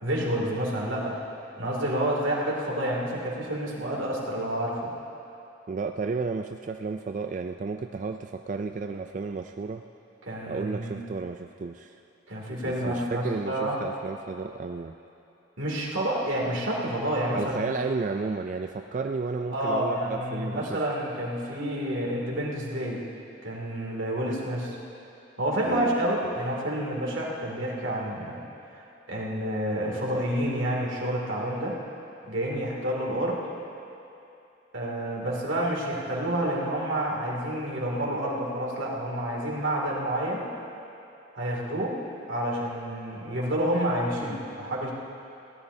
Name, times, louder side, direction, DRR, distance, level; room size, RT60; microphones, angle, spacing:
voice 1, 0.0-1.2 1.6-4.9 10.2-11.0 12.3-13.8 15.6-17.7 19.5-23.0 23.4-24.8 25.4-28.4 28.7-28.8 29.1-31.8 32.2-33.4 34.7-40.5 41.3-42.0 42.3-44.9, right 1 dB, 80° right, -3 dB, 2.6 m, -29 dB
voice 2, 5.7-9.8 10.5-12.0 12.6-15.0 17.3-20.8 25.7-26.0 26.2-26.4, right 4 dB, 40° right, 5 dB, 0.3 m, -32 dB
22.0 x 17.0 x 2.8 m, 2.8 s
head